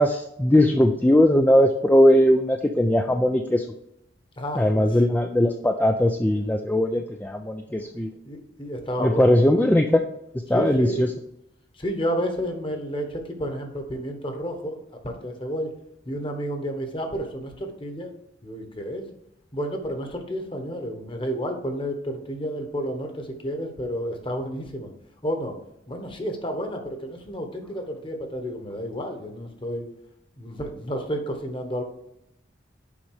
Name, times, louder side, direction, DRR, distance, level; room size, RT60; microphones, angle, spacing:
voice 1, 0.0-3.7 4.6-8.1 9.0-10.0 10.5-11.1, left 1 dB, 10° left, 4 dB, 0.4 m, -19 dB
voice 2, 4.4-5.1 8.2-9.4 10.5-11.1 11.7-15.7 16.0-18.1 18.4-19.1 19.5-24.9 25.2-25.6 25.9-29.8 30.4-31.8, equal, 30° left, 5 dB, 1.3 m, -31 dB
7.3 x 5.3 x 4.8 m, 0.79 s
head